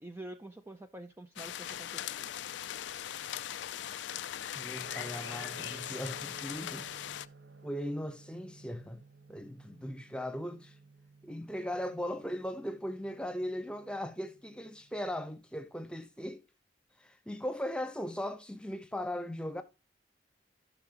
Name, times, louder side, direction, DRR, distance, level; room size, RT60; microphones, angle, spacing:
voice 1, 0.0-2.3, right 1 dB, 15° right, 0.5 m, -47 dB
sound 1, 1.4-7.3, left 11 dB, 70° left, 0.4 m, -40 dB
voice 2, 4.5-6.9 7.6-9.0 9.3-10.8 11.2-16.4 17.0-19.6, equal, 5° left, 0.9 m, -38 dB
sound 2, 4.8-15.8, right 2 dB, 65° right, 0.9 m, -55 dB
15.5 x 5.9 x 2.9 m
head